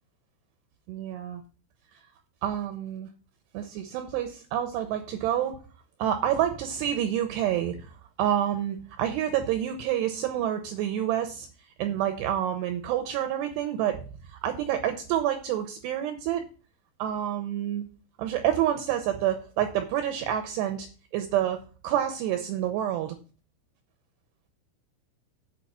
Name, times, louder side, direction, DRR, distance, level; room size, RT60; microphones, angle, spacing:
voice 1, 0.9-1.4 2.4-3.1 3.5-5.6 6.0-11.5 11.8-14.0 14.2-16.4 17.0-17.8 18.2-21.6 21.8-23.2, right 11 dB, 85° right, 7 dB, 2.4 m, -28 dB
8.3 x 4.8 x 7.3 m, 0.37 s
omnidirectional pair, 5.8 m